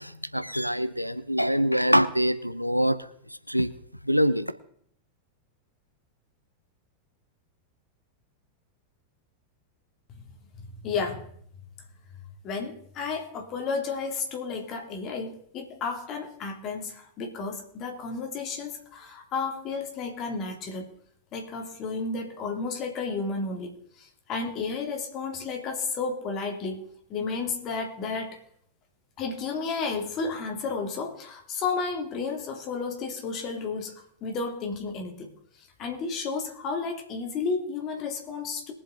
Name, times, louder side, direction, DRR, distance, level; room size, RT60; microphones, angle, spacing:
voice 1, 0.0-3.0 3.5-3.7 4.1-4.5, equal, 90° right, 13 dB, 0.6 m, -24 dB
voice 2, 10.6-11.2 12.4-20.9 21.3-23.7 24.0-26.8 27.1-28.4 29.2-35.3 35.5-38.7, left 4 dB, 35° left, 2 dB, 2.9 m, -32 dB
22.0 x 7.5 x 4.0 m, 0.67 s
figure-of-eight pair, 90°, 0 cm